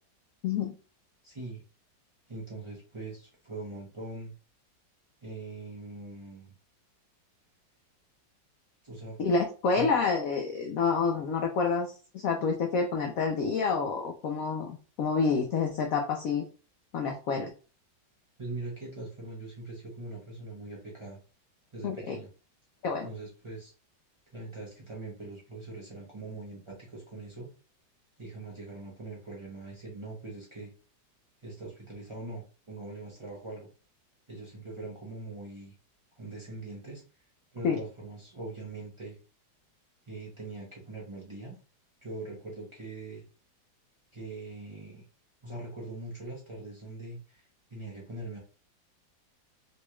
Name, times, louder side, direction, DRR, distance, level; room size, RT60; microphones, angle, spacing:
voice 1, 1.2-1.6 2.3-4.3 5.2-6.5 8.8-9.2 9.8-9.9 18.4-21.2 21.7-22.3 23.0-23.7 24.3-27.5 28.2-30.7 31.4-33.7 34.3-35.7 36.2-37.0 37.5-39.2 40.1-41.5 42.0-43.2 44.1-45.0 45.4-48.4, right 2 dB, 50° right, -4 dB, 0.3 m, -42 dB
voice 2, 9.2-16.4 16.9-17.5 21.8-22.2 22.8-23.1 37.6-37.8, left 5 dB, 80° left, 2 dB, 0.7 m, -28 dB
4.1 x 2.2 x 3.0 m, 0.36 s
omnidirectional pair, 2.0 m